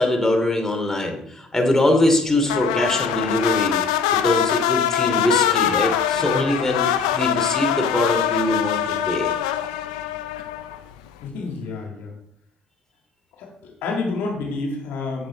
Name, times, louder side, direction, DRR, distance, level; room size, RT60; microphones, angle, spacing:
voice 1, 0.0-3.8 4.2-9.3, left 1 dB, 15° left, 2 dB, 3.0 m, -22 dB
sound 1, 2.5-10.9, left 11 dB, 90° left, 0.6 m, -23 dB
voice 2, 11.2-12.1 13.4-15.3, left 3 dB, 75° left, 1 dB, 1.9 m, -29 dB
8.7 x 7.7 x 4.3 m, 0.72 s
hypercardioid pair, 60°, 4 cm